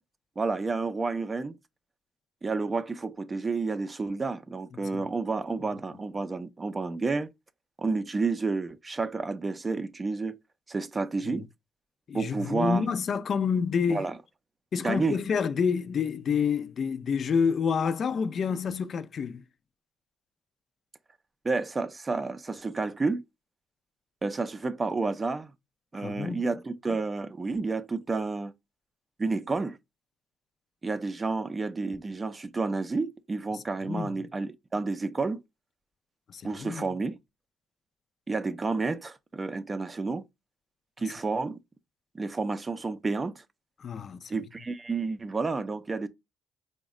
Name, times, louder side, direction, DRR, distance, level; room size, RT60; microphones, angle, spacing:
voice 1, 0.4-1.6 2.4-7.3 7.8-10.4 10.7-11.5 12.1-12.8 13.9-14.2 14.8-15.2 21.4-23.2 24.2-25.5 25.9-28.5 29.2-29.8 30.8-35.4 36.4-37.2 38.3-40.2 41.0-41.6 42.1-43.4 44.3-46.1, right 3 dB, 25° right, 0.4 m, -30 dB
voice 2, 12.1-14.1 14.7-19.4 25.9-26.4 33.5-34.1 36.3-36.8 43.8-44.4, left 6 dB, 55° left, 0.4 m, -28 dB
4.0 x 2.1 x 3.5 m
cardioid pair, 90°, 0 cm